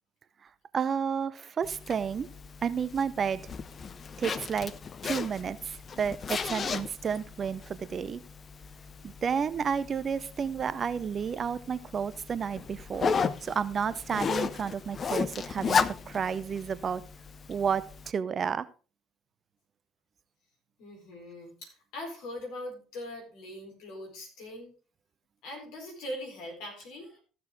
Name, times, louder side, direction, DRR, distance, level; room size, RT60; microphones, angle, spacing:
voice 1, 0.7-2.3 2.6-3.5 4.2-4.7 5.0-8.2 9.2-13.1 13.4-17.0 17.5-18.7, right 7 dB, 40° right, 16 dB, 0.7 m, -31 dB
Zipper (clothing), 1.6-18.1, left 6 dB, 40° left, 0.6 m, -35 dB
voice 2, 20.8-24.7 25.4-27.2, left 1 dB, 65° left, 1 dB, 4.3 m, -41 dB
14.5 x 6.7 x 3.7 m, 0.36 s
hypercardioid pair, 55°, 0 cm